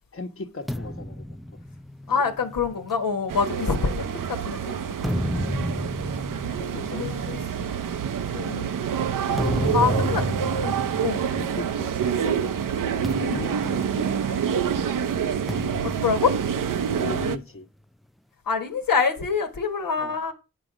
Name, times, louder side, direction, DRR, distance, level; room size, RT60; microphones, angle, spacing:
voice 1, 0.1-1.3 2.1-2.2 3.5-3.8 5.5-5.6 6.6-7.6 9.2-10.5 11.3-12.4 12.7-14.8 16.9-17.7 20.0-20.2, left 3 dB, 40° left, 1.2 m, -38 dB
sound 1, 0.7-4.3 4.8-12.2 12.5-12.7 13.0-14.7 15.5-17.2, left 1 dB, ahead, 0.5 m, -32 dB
voice 2, 2.1-5.0 6.4-6.7 7.0-7.7 8.3-8.7 9.7-10.8 11.0-11.2 13.2-13.5 15.8-16.4 18.5-20.3, left 5 dB, 85° left, 1.4 m, -26 dB
sound 2, 3.3-17.4, right 8 dB, 75° right, 0.7 m, -27 dB
8.8 x 5.0 x 5.0 m
cardioid pair, 45°, 33 cm